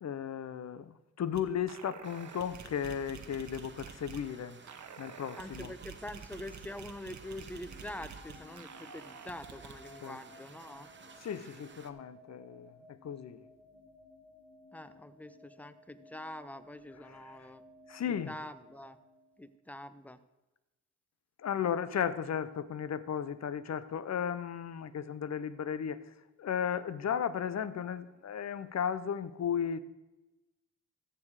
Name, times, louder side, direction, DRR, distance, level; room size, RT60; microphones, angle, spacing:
voice 1, 0.0-4.6 5.0-5.7 10.0-10.2 11.2-12.7 13.0-13.5 17.0-17.3 17.9-18.3 21.4-26.0 26.4-29.8, left 8 dB, 55° left, 15 dB, 0.7 m, -35 dB
sound 1, 1.3-1.4 1.7-4.3 4.7-9.8, right 7 dB, 60° right, 1.1 m, -49 dB
sound 2, 2.0-11.9, right 4 dB, 35° right, 0.9 m, -55 dB
voice 2, 5.4-10.9 14.7-17.6 18.1-19.0 19.4-20.2, left 1 dB, 5° left, 13 dB, 0.7 m, -45 dB
sound 3, 7.6-19.7, left 1 dB, 20° left, 2.1 m, -58 dB
14.5 x 6.9 x 4.8 m, 1.1 s
cardioid pair, 75°, 32 cm